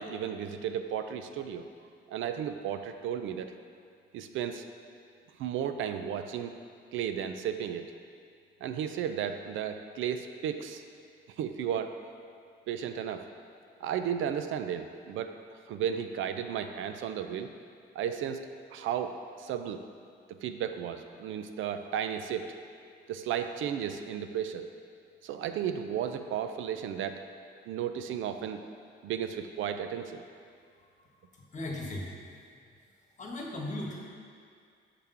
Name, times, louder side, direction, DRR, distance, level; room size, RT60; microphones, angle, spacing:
voice 1, 0.0-1.7 2.1-3.5 4.1-4.6 5.4-6.5 6.9-7.9 8.6-10.8 11.4-11.9 12.7-13.2 13.8-17.5 17.9-19.8 20.4-22.5 23.1-24.7 25.2-27.2 27.7-28.6 29.0-30.2, right 8 dB, 80° right, 8 dB, 0.4 m, -34 dB
voice 2, 31.3-32.1 33.2-34.1, left 1 dB, 40° left, -1 dB, 1.3 m, -37 dB
6.6 x 3.6 x 5.6 m, 2.3 s
cardioid pair, 90°, 20 cm